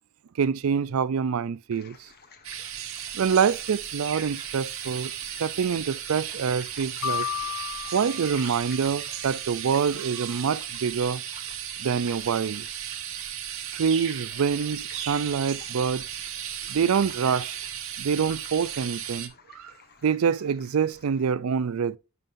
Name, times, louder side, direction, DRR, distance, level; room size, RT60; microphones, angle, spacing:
voice 1, 0.4-2.0 3.1-5.1 5.4-7.3 7.9-11.2 11.8-12.8 13.7-16.0 16.7-17.6 18.0-19.7 20.0-22.0, right 6 dB, 90° right, 0.4 m, -26 dB
sound 1, 1.7-21.3, left 5 dB, 50° left, 1.3 m, -51 dB
sound 2, 2.4-19.3, right 10 dB, 70° right, 1.2 m, -36 dB
sound 3, 7.0-9.2, left 9 dB, 90° left, 0.6 m, -33 dB
11.0 x 5.4 x 2.6 m
head